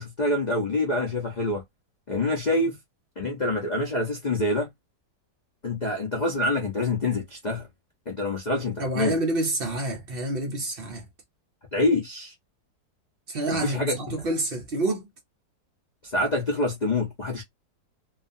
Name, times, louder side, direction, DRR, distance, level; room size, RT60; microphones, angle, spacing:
voice 1, 0.0-1.6 2.1-2.8 3.2-4.7 5.6-7.7 8.1-9.2 11.7-12.3 13.6-14.0 16.0-17.4, left 2 dB, 60° left, 0.4 m, -26 dB
voice 2, 8.8-11.0 13.3-15.1, right 1 dB, 55° right, 0.6 m, -28 dB
2.8 x 2.3 x 2.5 m
omnidirectional pair, 1.9 m